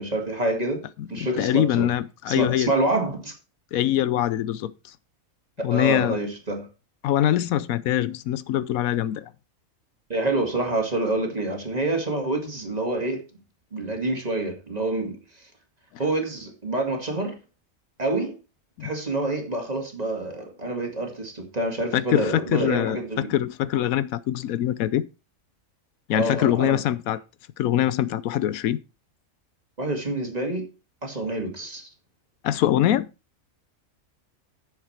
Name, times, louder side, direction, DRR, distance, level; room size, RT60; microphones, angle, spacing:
voice 1, 0.0-1.9 2.3-3.3 5.7-6.7 10.1-13.2 13.7-15.2 16.0-17.4 18.0-18.4 18.8-23.3 26.1-26.8 29.8-30.7 31.0-31.9, right 2 dB, 30° right, 2.3 m, -27 dB
voice 2, 1.0-2.7 3.7-4.7 5.6-6.2 7.0-9.2 18.8-18.9 21.9-25.1 26.1-27.2 27.6-28.8 32.4-33.1, left 12 dB, 85° left, 1.1 m, -23 dB
10.0 x 7.2 x 4.4 m
omnidirectional pair, 1.4 m